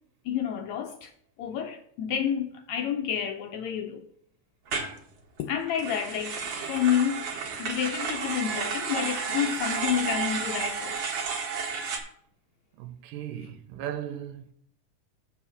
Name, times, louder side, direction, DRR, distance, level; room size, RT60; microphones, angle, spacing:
voice 1, 0.3-1.1 1.4-4.1 5.4-7.3 7.6-11.0, left 9 dB, 85° left, 1.6 m, -29 dB
sound 1, 4.7-4.9 5.7-12.0, right 5 dB, 55° right, 2.2 m, -32 dB
voice 2, 12.8-14.5, right 10 dB, 90° right, 2.3 m, -37 dB
7.3 x 4.9 x 7.1 m
omnidirectional pair, 3.9 m